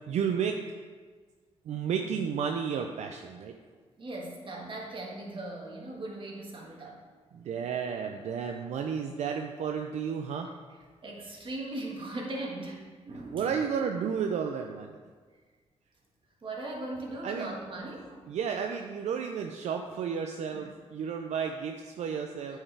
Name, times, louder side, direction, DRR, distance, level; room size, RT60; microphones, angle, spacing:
voice 1, 0.1-0.6 1.7-3.6 7.3-10.5 13.3-14.9 17.2-17.5 18.3-22.6, right 7 dB, 75° right, 4 dB, 0.4 m, -32 dB
voice 2, 4.0-7.0 11.0-12.8 13.0-13.5 16.4-18.3 20.5-20.7, right 2 dB, 45° right, -1 dB, 1.6 m, -39 dB
8.7 x 4.6 x 3.3 m, 1.5 s
cardioid pair, 85°, 12 cm